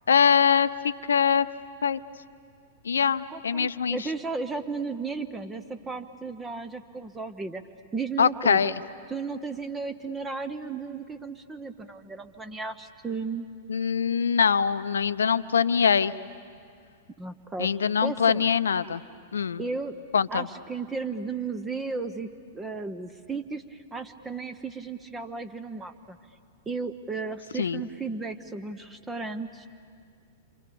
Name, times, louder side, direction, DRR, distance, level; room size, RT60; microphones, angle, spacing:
voice 1, 0.1-1.5 1.8-2.0 2.8-4.0 8.2-8.7 13.7-16.1 17.6-19.0 19.3-19.6 20.1-20.5 27.6-27.8, left 7 dB, 75° left, 14 dB, 0.7 m, -23 dB
voice 2, 3.3-7.6 7.9-8.7 9.1-13.5 17.2-18.4 19.6-19.9 20.3-26.2 26.7-29.7, right 4 dB, 15° right, 9 dB, 1.0 m, -34 dB
28.5 x 27.0 x 7.0 m, 2.3 s
figure-of-eight pair, 100°, 0 cm